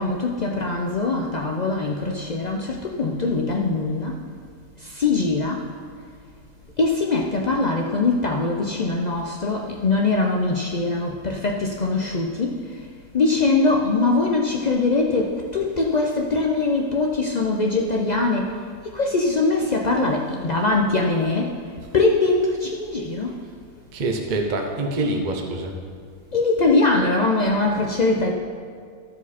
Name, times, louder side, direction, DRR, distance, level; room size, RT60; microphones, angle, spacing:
voice 1, 0.0-4.2 4.8-5.7 6.8-12.8 13.1-21.6 21.9-23.4 26.3-28.3, left 3 dB, 80° left, 0 dB, 0.3 m, -22 dB
voice 2, 23.9-25.7, right 2 dB, 40° right, 3 dB, 0.8 m, -25 dB
14.0 x 4.9 x 4.2 m, 2.1 s
omnidirectional pair, 1.6 m